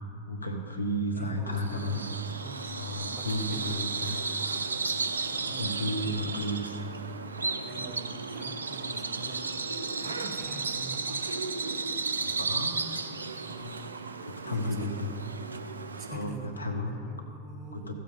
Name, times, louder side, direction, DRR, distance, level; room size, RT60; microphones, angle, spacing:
voice 1, 0.0-2.1 2.7-4.6 5.5-6.8 12.2-13.0 14.3-15.2 16.1-17.0 17.7-17.9, left 1 dB, 80° left, 4 dB, 1.0 m, -33 dB
voice 2, 1.1-2.0 2.4-2.8 3.1-3.9 5.3-6.5 7.6-11.3 13.4-13.9 14.5-15.1 16.0-17.9, right 2 dB, 25° right, 2 dB, 1.4 m, -45 dB
Bird vocalization bird call bird song, 1.5-16.3, right 4 dB, 75° right, 0.5 m, -34 dB
15.5 x 7.6 x 3.6 m, 2.5 s
figure-of-eight pair, 90°, 0 cm